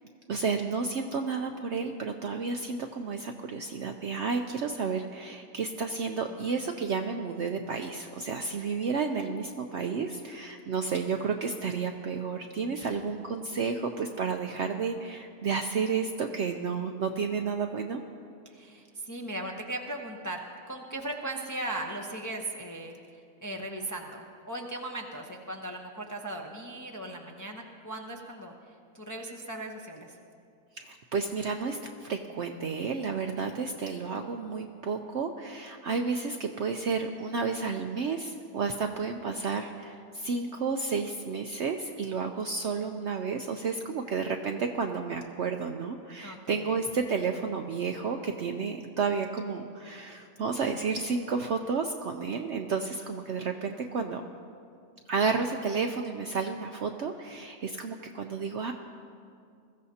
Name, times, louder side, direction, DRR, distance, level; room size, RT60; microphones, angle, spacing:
voice 1, 0.3-18.0 30.7-54.2 55.1-58.7, right 5 dB, 60° right, 4 dB, 0.7 m, -31 dB
voice 2, 6.3-6.7 12.8-13.0 18.4-20.4 20.7-30.2 46.2-46.8 52.9-53.1, right 1 dB, 15° left, 0 dB, 0.6 m, -38 dB
21.5 x 14.5 x 2.8 m, 2.4 s
omnidirectional pair, 1.6 m